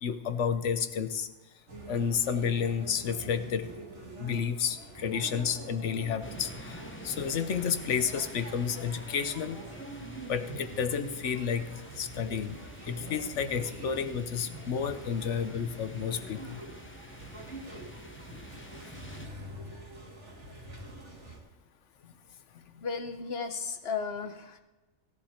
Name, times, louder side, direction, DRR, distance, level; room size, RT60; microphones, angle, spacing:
voice 1, 0.0-1.3 1.9-3.7 4.2-6.8 7.0-9.6 10.3-11.6 12.0-12.5 12.9-16.4, left 7 dB, 85° left, 11 dB, 1.2 m, -31 dB
sound 1, 1.7-21.4, right 1 dB, 80° right, 2.8 m, -45 dB
sound 2, 6.2-19.3, equal, 10° left, 1.0 m, -48 dB
voice 2, 22.8-24.6, left 5 dB, 60° left, 7 dB, 1.3 m, -34 dB
16.0 x 11.0 x 4.4 m, 1.1 s
omnidirectional pair, 1.2 m